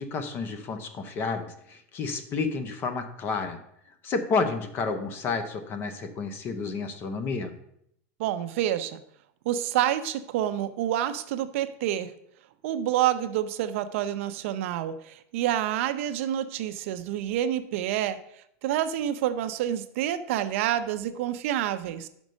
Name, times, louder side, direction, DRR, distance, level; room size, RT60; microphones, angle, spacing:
voice 1, 0.0-3.6 4.0-7.5, left 4 dB, 25° left, 9 dB, 0.7 m, -30 dB
voice 2, 8.2-9.0 9.4-12.1 12.6-18.2 18.6-22.1, right 11 dB, 60° right, 11 dB, 0.6 m, -28 dB
6.2 x 5.3 x 6.3 m, 0.72 s
supercardioid pair, 170°, 8 cm